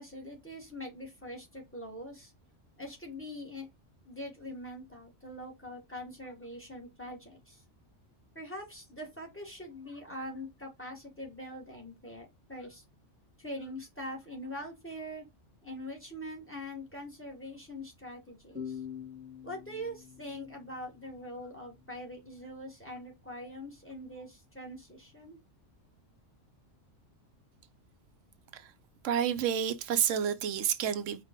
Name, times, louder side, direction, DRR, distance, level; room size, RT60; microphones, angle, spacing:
voice 1, 0.0-2.3 2.8-3.7 4.0-7.6 8.3-12.8 13.4-15.2 15.6-18.8 19.4-25.4, left 1 dB, 10° left, 1.5 m, -43 dB
sound 1, 18.5-22.0, left 8 dB, 5° right, 1.2 m, -45 dB
voice 2, 29.0-31.2, right 9 dB, 85° right, 1.0 m, -29 dB
4.7 x 2.5 x 3.6 m
omnidirectional pair, 1.3 m